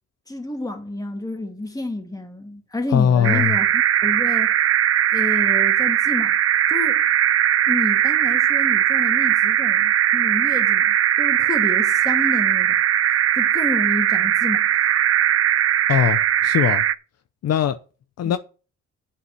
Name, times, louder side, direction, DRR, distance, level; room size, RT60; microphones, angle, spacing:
voice 1, 0.3-4.5 5.1-6.4 6.7-7.0 7.7-12.8 13.4-14.8 18.2-18.4, left 2 dB, 10° left, 2.5 m, -30 dB
voice 2, 2.9-3.6 15.9-16.8 17.4-17.8 18.2-18.4, left 9 dB, 55° left, 0.7 m, -20 dB
sound 1, 3.2-16.9, right 11 dB, 50° right, 0.6 m, -19 dB
8.1 x 5.7 x 7.6 m
cardioid pair, 90°, 30 cm